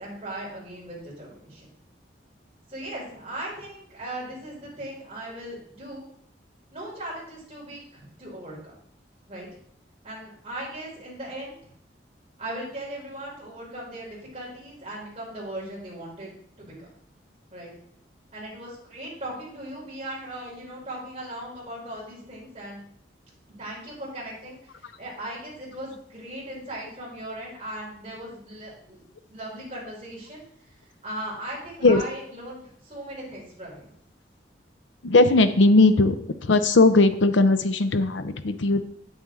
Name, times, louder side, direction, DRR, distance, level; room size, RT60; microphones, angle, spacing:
voice 1, 0.0-1.7 2.7-6.0 6.7-8.8 9.3-9.5 10.0-11.6 12.4-16.3 16.6-16.9 17.5-17.7 18.3-22.8 23.6-29.0 29.3-30.4 31.0-33.9, right 1 dB, 30° right, -5 dB, 3.7 m, -38 dB
voice 2, 35.0-36.2 36.4-38.8, left 2 dB, 85° left, 10 dB, 0.7 m, -18 dB
8.4 x 7.2 x 3.7 m, 0.67 s
head